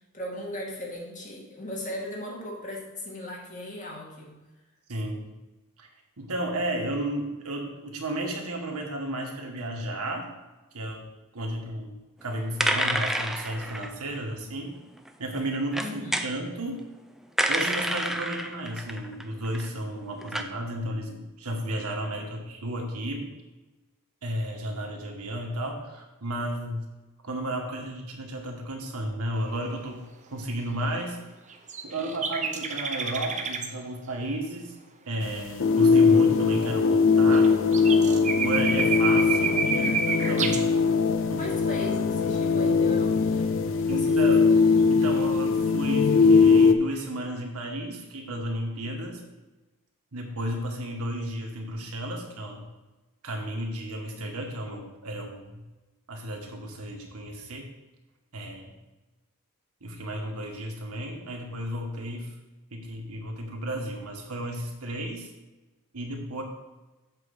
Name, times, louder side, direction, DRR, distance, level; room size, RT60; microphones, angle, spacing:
voice 1, 0.1-4.4 15.8-16.2 39.7-40.4 41.4-43.5 43.8-44.3, left 1 dB, 35° left, -2 dB, 2.2 m, -37 dB
voice 2, 4.9-5.3 5.8-5.9 6.2-10.3 10.7-11.1 11.3-11.9 12.2-14.7 15.2-16.9 17.5-23.3 24.2-26.8 27.2-31.2 31.8-34.8 35.1-37.5 38.4-40.6 41.3-41.4 43.9-44.4 44.9-49.2 50.1-52.6 53.2-55.6 56.1-57.7 58.3-58.7 59.8-62.3 62.7-65.3 65.9-66.4, right 1 dB, 80° right, 1 dB, 1.6 m, -33 dB
sound 1, 12.3-12.4 12.6-14.2 15.0-15.1 15.3-16.3 17.4-19.7 20.2-20.4, right 1 dB, ahead, 0.5 m, -28 dB
sound 2, 31.5-33.7 37.3-37.5 37.7-40.6, right 5 dB, 35° right, 0.8 m, -29 dB
sound 3, 35.2-46.7, left 5 dB, 60° left, 0.6 m, -21 dB
7.6 x 4.6 x 6.6 m, 1.1 s
head